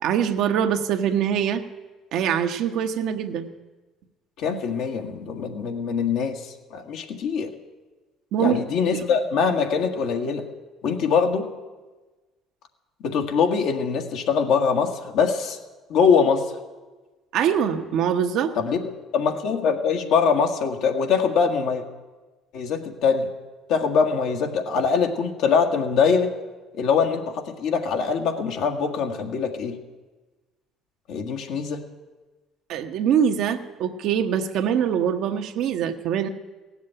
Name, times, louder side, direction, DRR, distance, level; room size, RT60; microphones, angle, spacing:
voice 1, 0.0-1.6 2.1-3.5 8.3-8.6 8.9-9.0 17.3-18.5 32.7-36.3, right 8 dB, 70° right, 5 dB, 1.0 m, -23 dB
voice 2, 4.4-7.5 8.4-10.4 10.8-11.5 13.0-15.6 15.9-16.5 18.6-18.8 19.1-21.8 22.5-23.3 23.7-26.3 26.7-29.8 31.1-31.9, left 6 dB, 75° left, 3 dB, 1.7 m, -23 dB
16.5 x 7.3 x 9.1 m, 1.2 s
supercardioid pair, 80°, 0 cm